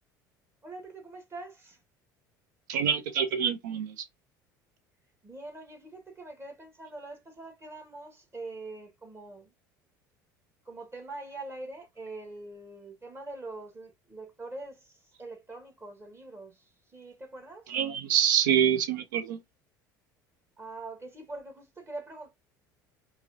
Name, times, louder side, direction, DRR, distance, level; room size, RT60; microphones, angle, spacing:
voice 1, 0.6-1.8 5.2-9.5 10.6-17.7 20.6-22.3, right 2 dB, 25° right, 1.6 m, -43 dB
voice 2, 2.7-4.1 17.7-19.4, right 9 dB, 70° right, 0.7 m, -26 dB
4.7 x 2.2 x 2.6 m
figure-of-eight pair, 65°, 10 cm